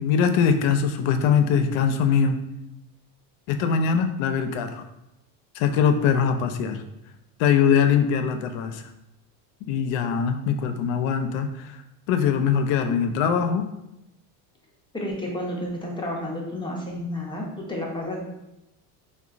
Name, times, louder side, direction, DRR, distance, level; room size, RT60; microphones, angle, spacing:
voice 1, 0.0-2.4 3.5-4.8 5.6-6.8 7.4-8.8 9.7-11.8 12.1-13.6, left 7 dB, 65° left, 7 dB, 0.5 m, -22 dB
voice 2, 14.9-18.2, left 1 dB, 10° left, -2 dB, 0.5 m, -31 dB
3.6 x 2.2 x 2.4 m, 0.89 s
supercardioid pair, 105°, 50 cm